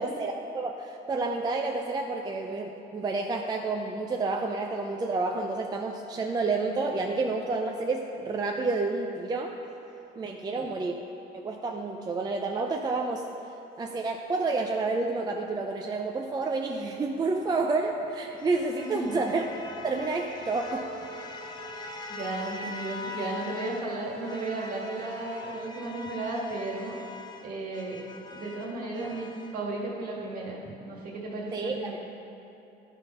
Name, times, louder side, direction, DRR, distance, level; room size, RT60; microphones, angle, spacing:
voice 1, 0.0-9.6 10.2-11.0 11.3-13.3 13.8-19.5 19.7-20.9 31.5-32.0, right 3 dB, 25° right, 2 dB, 0.5 m, -29 dB
voice 2, 10.3-10.8 18.8-19.2 22.1-27.0 27.4-28.0 28.3-29.3 29.5-32.0, right 2 dB, 60° right, -3 dB, 1.8 m, -34 dB
sound 1, 17.3-23.9 24.2-29.6, left 4 dB, 25° left, 0.6 m, -43 dB
sound 2, 20.2-25.5, right 4 dB, 85° right, 0.7 m, -47 dB
11.5 x 4.1 x 5.4 m, 2.9 s
cardioid pair, 110°, 17 cm